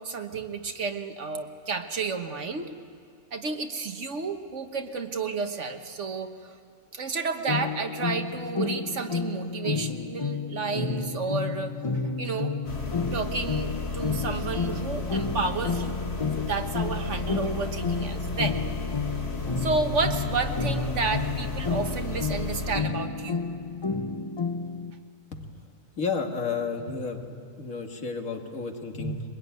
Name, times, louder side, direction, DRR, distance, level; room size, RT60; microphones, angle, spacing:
voice 1, 0.0-2.7 3.3-6.6 6.9-11.8 12.2-12.5 13.1-16.0 16.4-18.6 19.6-23.4, right 4 dB, 60° right, 6 dB, 1.6 m, -31 dB
sound 1, 7.5-24.9, left 5 dB, 30° left, 0.5 m, -31 dB
sound 2, 12.6-22.8, left 3 dB, 50° left, 2.0 m, -33 dB
voice 2, 26.0-27.2 27.6-29.2, left 4 dB, 75° left, 3 dB, 2.3 m, -31 dB
23.0 x 21.0 x 9.4 m, 2.3 s
omnidirectional pair, 1.4 m